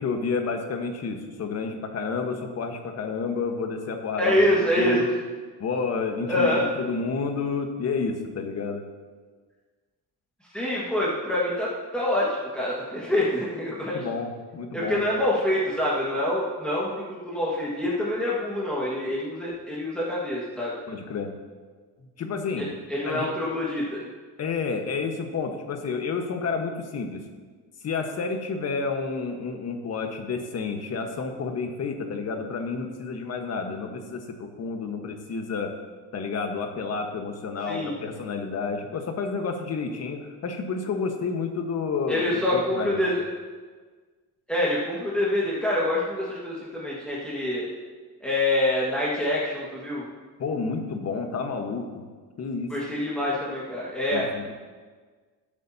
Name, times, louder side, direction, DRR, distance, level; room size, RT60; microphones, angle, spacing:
voice 1, 0.0-4.4 4.8-5.1 5.6-8.8 13.9-15.0 20.9-21.3 22.2-22.7 23.1-23.3 24.4-27.3 27.8-35.7 36.1-43.0 50.4-52.0 52.4-52.7 54.1-54.5, left 4 dB, 40° left, 4 dB, 1.4 m, -30 dB
voice 2, 4.2-5.0 6.3-6.7 10.5-14.0 14.7-20.8 22.6-24.1 37.6-37.9 42.1-43.2 44.5-47.7 48.2-50.0 52.7-54.3, left 1 dB, 5° left, -7 dB, 1.7 m, -26 dB
19.5 x 8.5 x 2.9 m, 1.5 s
cardioid pair, 145°, 39 cm